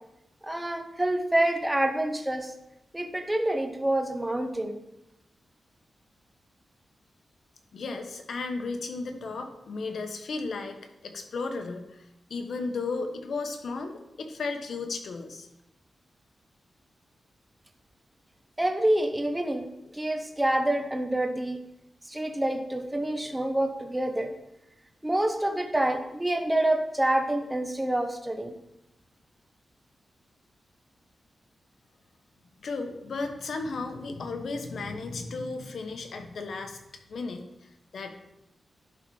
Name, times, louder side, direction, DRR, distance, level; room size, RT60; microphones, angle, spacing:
voice 1, 0.4-2.5 2.9-4.8 18.6-19.7 19.9-21.6 22.0-24.3 25.0-28.5, right 1 dB, 10° right, 5 dB, 0.9 m, -27 dB
voice 2, 7.7-10.8 11.0-15.5 32.6-36.8 37.1-38.1, left 3 dB, 70° left, 6 dB, 1.0 m, -34 dB
11.5 x 4.1 x 4.8 m, 0.88 s
cardioid pair, 85°, 0 cm